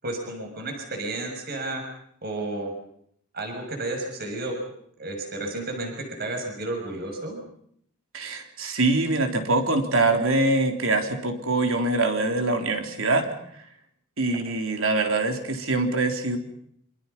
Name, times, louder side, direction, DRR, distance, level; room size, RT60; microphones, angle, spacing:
voice 1, 0.0-1.8 2.2-2.7 3.3-4.6 5.0-7.4, right 2 dB, 45° right, 3 dB, 6.6 m, -32 dB
voice 2, 8.1-13.3 14.2-16.4, right 2 dB, 65° right, 5 dB, 3.8 m, -24 dB
28.0 x 26.0 x 5.6 m, 0.68 s
head